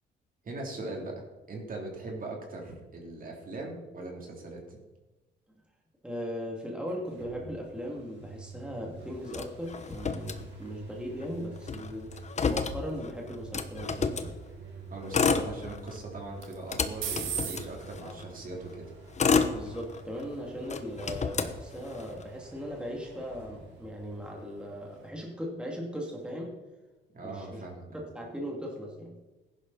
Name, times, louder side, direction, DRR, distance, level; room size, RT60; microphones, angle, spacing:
voice 1, 0.4-1.2 1.5-4.8 14.9-18.9 27.1-27.9, right 2 dB, 45° right, 0 dB, 3.4 m, -40 dB
voice 2, 6.0-12.1 12.5-14.3 18.0-18.1 19.5-26.6 27.2-27.6 27.9-29.2, equal, 5° right, -1 dB, 2.6 m, -38 dB
sound 1, 6.8-25.3, right 4 dB, 65° right, 4.5 m, -50 dB
Motor vehicle (road), 9.3-10.9 11.2-11.3 11.6-14.3 15.0-16.0 16.4-18.2 18.8-20.2 20.7-22.2, left 5 dB, 35° left, 1.0 m, -30 dB
sound 2, 13.2-25.1, right 8 dB, 85° right, 2.1 m, -45 dB
15.0 x 11.0 x 4.2 m, 1.1 s
cardioid pair, 90°, 20 cm